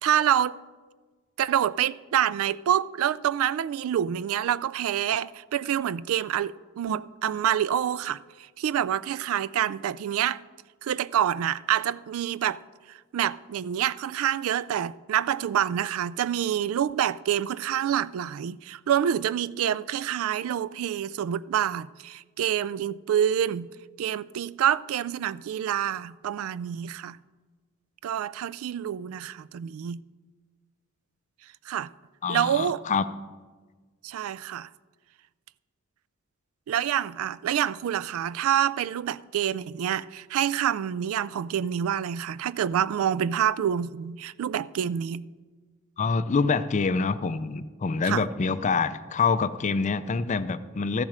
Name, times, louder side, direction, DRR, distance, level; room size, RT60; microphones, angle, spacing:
voice 1, 0.0-0.6 1.4-8.2 8.6-10.4 10.8-12.6 13.1-23.7 24.0-27.2 28.0-30.0 31.7-31.9 32.3-32.8 34.0-34.7 36.7-45.2 48.0-48.2, right 10 dB, 80° right, 0.3 m, -27 dB
voice 2, 32.2-33.0 46.0-51.0, left 4 dB, 35° left, 0.4 m, -26 dB
13.5 x 7.3 x 4.9 m
head